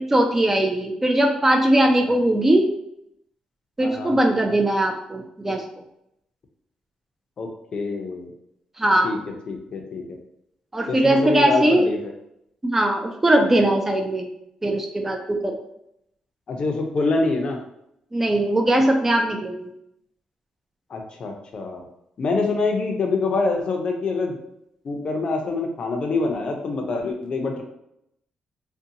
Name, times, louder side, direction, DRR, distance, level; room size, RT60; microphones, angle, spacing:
voice 1, 0.0-2.7 3.8-5.6 8.8-9.2 10.7-11.9 12.6-14.3 14.6-15.6 18.1-19.7, right 1 dB, 15° right, 3 dB, 0.4 m, -20 dB
voice 2, 3.8-4.2 7.4-8.3 9.0-9.2 9.5-10.2 10.9-12.0 16.5-17.6 20.9-21.9 22.2-24.4 24.8-27.6, left 3 dB, 50° left, 2 dB, 0.5 m, -25 dB
2.6 x 2.2 x 2.7 m, 0.79 s
cardioid pair, 120°, 2 cm